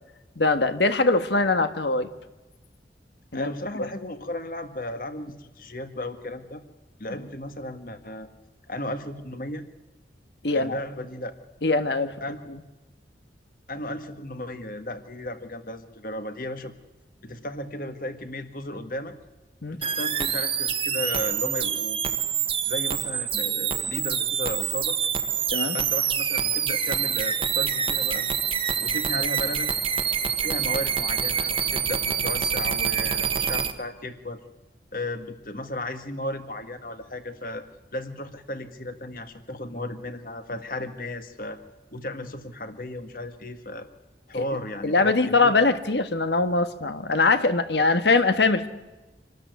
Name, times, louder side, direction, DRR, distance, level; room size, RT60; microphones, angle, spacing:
voice 1, 0.4-2.1 3.3-3.5 10.4-10.8 11.6-12.1 12.5-12.6 19.6-19.8 25.5-25.8 44.8-48.7, left 3 dB, 75° left, 9 dB, 1.5 m, -22 dB
voice 2, 3.3-6.6 7.0-8.3 8.7-9.7 10.5-11.3 12.2-12.4 13.7-16.7 17.2-19.1 19.7-22.0 22.7-25.0 25.7-28.3 28.8-29.7 30.2-34.4 34.9-37.6 37.9-41.6 41.9-43.9 44.3-45.6, left 1 dB, 50° left, 8 dB, 1.8 m, -35 dB
sound 1, 19.8-33.7, right 8 dB, 30° right, 1.3 m, -26 dB
26.5 x 13.0 x 9.5 m, 1.1 s
head